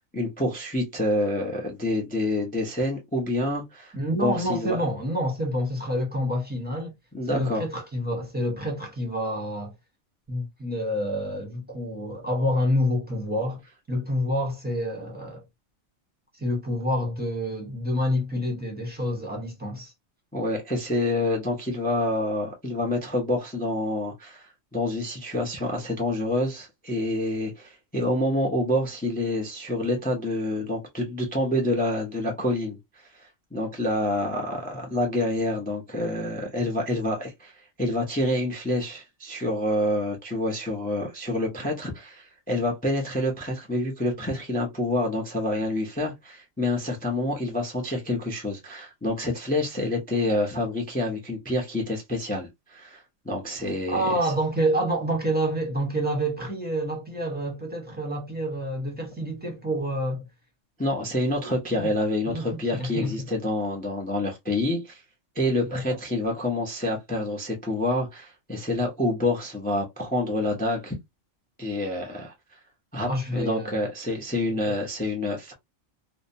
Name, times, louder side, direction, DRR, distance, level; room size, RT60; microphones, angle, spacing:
voice 1, 0.1-3.9 4.2-4.8 7.1-7.6 20.3-32.8 33.1-37.5 37.8-54.1 60.8-65.0 65.4-71.0 71.6-72.3 72.9-75.5, left 1 dB, 15° left, 0.3 m, -27 dB
voice 2, 3.9-6.9 7.3-9.7 10.3-13.6 13.9-15.4 16.3-19.9 53.9-60.2 61.4-61.5 61.8-61.9 62.3-63.3 65.7-66.0 73.1-73.8, equal, 10° right, 0.7 m, -28 dB
2.7 x 2.1 x 2.6 m
omnidirectional pair, 1.4 m